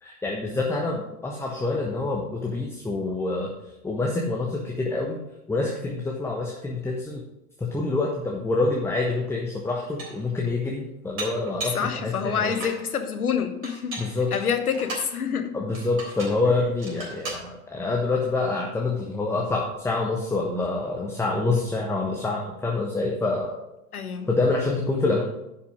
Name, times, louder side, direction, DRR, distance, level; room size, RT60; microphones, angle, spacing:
voice 1, 0.0-3.5 3.8-5.2 5.5-7.2 7.6-12.6 14.0-14.3 15.5-23.5 24.3-25.2, left 3 dB, 5° left, -1 dB, 1.1 m, -26 dB
Dishes pots and pans, 9.1-9.2 9.7-10.3 11.2-11.9 12.3-12.8 13.6-15.1 15.7-16.4 16.8-17.5, right 2 dB, 65° right, 3.6 m, -36 dB
voice 2, 11.7-14.0 14.3-15.6 23.9-24.3, left 7 dB, 75° left, 7 dB, 1.3 m, -27 dB
10.5 x 5.7 x 5.0 m, 0.89 s
figure-of-eight pair, 90°, 44 cm